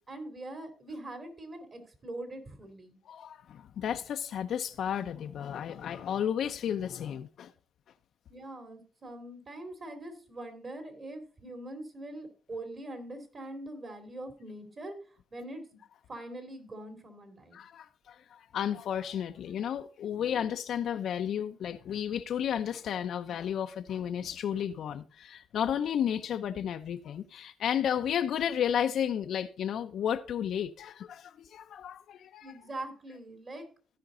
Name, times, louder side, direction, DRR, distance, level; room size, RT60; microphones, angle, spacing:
voice 1, 0.1-3.0 8.3-15.0 15.3-15.8 16.1-17.6 32.4-33.7, right 1 dB, 40° right, 2.6 m, -43 dB
voice 2, 3.1-7.5 17.5-32.5, left 9 dB, 70° left, 0.6 m, -33 dB
15.5 x 5.1 x 3.8 m
cardioid pair, 90°, 0 cm